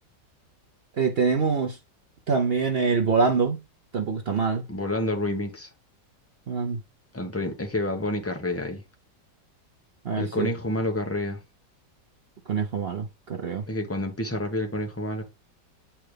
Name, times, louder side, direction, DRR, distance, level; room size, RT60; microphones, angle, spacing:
voice 1, 1.0-1.8 2.3-3.6 3.9-4.6 6.5-6.8 10.0-10.5 12.5-13.6, right 5 dB, 60° right, 0.6 m, -25 dB
voice 2, 4.7-5.7 7.1-8.8 10.2-11.4 13.7-15.2, left 1 dB, 10° left, 0.9 m, -29 dB
7.7 x 4.3 x 3.3 m
omnidirectional pair, 1.9 m